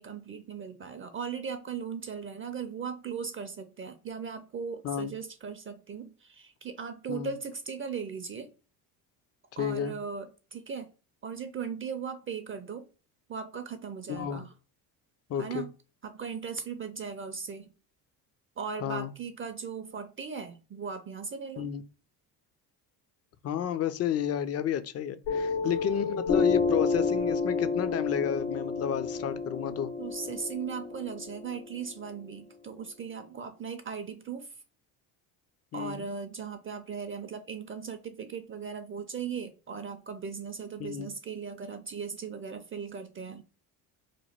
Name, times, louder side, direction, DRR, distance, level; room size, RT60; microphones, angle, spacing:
voice 1, 0.0-8.5 9.6-10.9 11.2-12.9 13.3-14.5 15.3-15.7 16.0-17.7 18.6-21.7 25.6-25.7 30.0-34.6 35.7-43.4, right 6 dB, 30° right, 0.4 m, -38 dB
voice 2, 9.6-10.0 14.1-14.4 15.3-15.6 18.8-19.1 21.6-21.8 23.4-29.9 35.7-36.0 40.8-41.1, left 9 dB, 35° left, 0.4 m, -31 dB
Piano, 25.3-32.3, left 4 dB, 85° left, 1.0 m, -30 dB
3.0 x 2.2 x 4.2 m
supercardioid pair, 75°, 46 cm